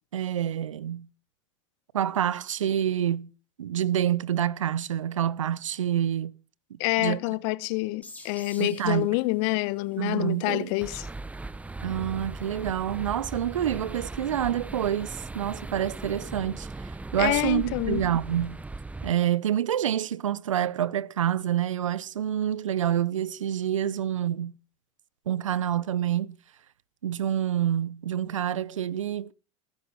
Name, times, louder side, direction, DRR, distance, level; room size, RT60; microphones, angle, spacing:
voice 1, 0.1-1.1 1.9-3.3 3.6-6.3 7.0-7.2 8.6-9.1 10.0-10.7 11.8-18.6 19.0-24.5 25.3-26.4 27.0-29.3, right 10 dB, 80° right, 0.8 m, -27 dB
voice 2, 6.8-11.1 17.2-18.1, left 22 dB, 55° left, 1.0 m, -27 dB
sound 1, 8.0-19.4, left 2 dB, 10° left, 4.5 m, -56 dB
sound 2, 10.8-19.1, right 3 dB, 10° right, 0.9 m, -38 dB
18.0 x 9.8 x 5.8 m
hypercardioid pair, 85°, 16 cm